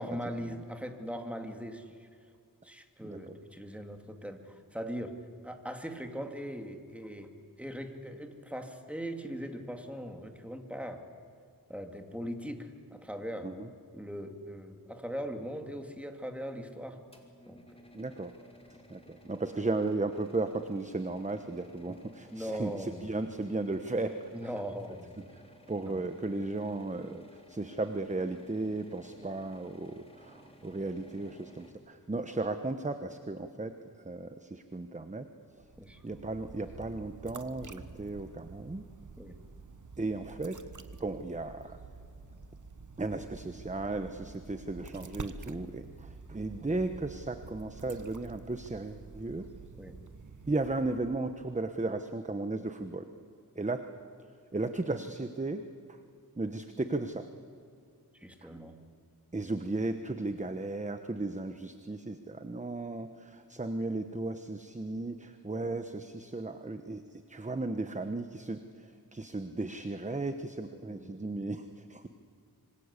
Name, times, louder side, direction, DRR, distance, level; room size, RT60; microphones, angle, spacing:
voice 1, 0.0-2.1 2.6-7.3 7.6-11.0 11.7-13.5 13.9-17.0 17.5-17.8 22.3-23.0 24.3-25.1 25.8-26.1 35.8-36.0 39.2-39.4 49.8-50.0 58.1-58.7 70.8-71.3, equal, 5° right, 4 dB, 2.5 m, -40 dB
voice 2, 3.0-3.3 13.4-13.7 17.9-18.3 18.9-24.2 25.7-33.8 34.0-35.3 36.0-38.9 40.0-40.6 41.0-41.8 43.0-49.5 50.5-53.1 53.5-53.9 54.5-55.6 56.4-57.3 58.4-58.5 59.3-72.1, right 2 dB, 20° right, 8 dB, 1.1 m, -35 dB
sound 1, 17.1-31.7, left 1 dB, 15° left, 3.6 m, -57 dB
sound 2, 35.5-51.4, right 4 dB, 55° right, 1.3 m, -48 dB
26.0 x 25.0 x 8.3 m, 2.4 s
wide cardioid pair, 105°, 37 cm